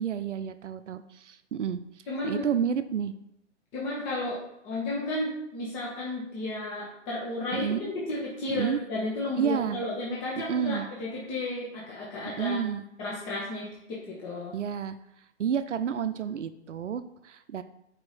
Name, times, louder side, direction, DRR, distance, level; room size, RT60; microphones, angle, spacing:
voice 1, 0.0-1.8 2.2-3.1 7.5-7.9 8.5-8.8 9.4-9.8 10.5-10.9 12.4-12.8 14.5-14.9 15.4-17.6, right 8 dB, 75° right, 11 dB, 0.6 m, -30 dB
voice 2, 2.1-2.4 3.7-4.4 4.6-7.7 7.9-12.6 13.0-14.5, left 2 dB, 25° left, -5 dB, 1.3 m, -33 dB
4.9 x 4.7 x 4.2 m, 0.81 s
figure-of-eight pair, 130°, 36 cm